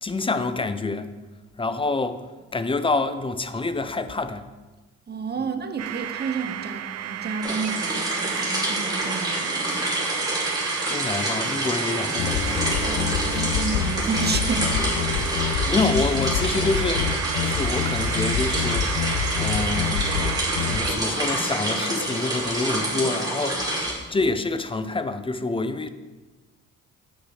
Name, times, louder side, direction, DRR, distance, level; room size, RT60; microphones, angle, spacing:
voice 1, 0.0-1.1 1.6-2.2 2.5-4.5 5.4-5.5 10.9-12.6 15.2-18.9 19.4-20.1 20.6-25.9, left 3 dB, 15° left, 11 dB, 0.5 m, -27 dB
voice 2, 5.1-9.9 12.9-14.7 15.0-15.4, right 4 dB, 35° right, 7 dB, 0.9 m, -31 dB
sound 1, 5.8-21.0, right 12 dB, 55° right, 0.5 m, -33 dB
sound 2, 7.4-23.9, right 1 dB, 15° right, 3.1 m, -28 dB
sound 3, 12.2-20.8, left 7 dB, 85° left, 0.7 m, -27 dB
8.1 x 5.9 x 4.9 m, 1.2 s
cardioid pair, 90°, 30 cm